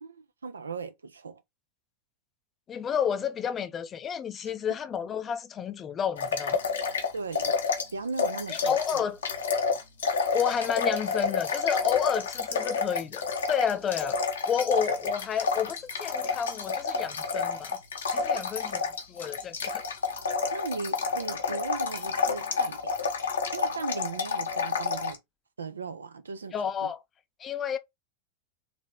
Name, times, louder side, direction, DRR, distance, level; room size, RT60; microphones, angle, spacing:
voice 1, 0.0-1.4 7.1-7.6 7.9-9.0 18.3-18.4 20.5-22.9 23.5-25.2 25.6-26.9, right 4 dB, 75° right, 0.6 m, -37 dB
voice 2, 2.7-6.6 8.5-9.2 10.3-14.2 14.5-17.8 18.1-18.8 19.1-19.8 26.5-27.0 27.4-27.8, left 8 dB, 25° left, 0.6 m, -30 dB
sound 1, 6.2-7.9 8.2-25.2, left 5 dB, 65° left, 1.0 m, -29 dB
4.1 x 3.2 x 3.6 m
figure-of-eight pair, 90°, 0 cm